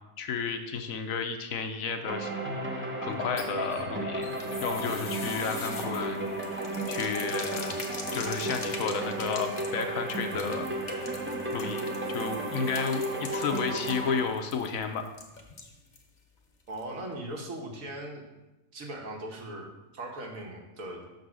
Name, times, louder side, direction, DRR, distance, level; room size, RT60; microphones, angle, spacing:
voice 1, 0.2-2.3 2.6-4.3 4.6-6.2 6.9-7.7 8.1-11.1 11.5-15.0, left 6 dB, 70° left, 6 dB, 1.0 m, -32 dB
sound 1, 2.1-14.3, right 1 dB, 15° right, 0.5 m, -33 dB
sound 2, 3.1-16.1 16.4-16.5 16.8-16.9, left 3 dB, 35° left, 0.8 m, -43 dB
voice 2, 16.7-18.2 18.7-21.0, right 1 dB, 65° right, 0 dB, 1.5 m, -39 dB
6.2 x 4.0 x 6.1 m, 1.0 s
omnidirectional pair, 1.6 m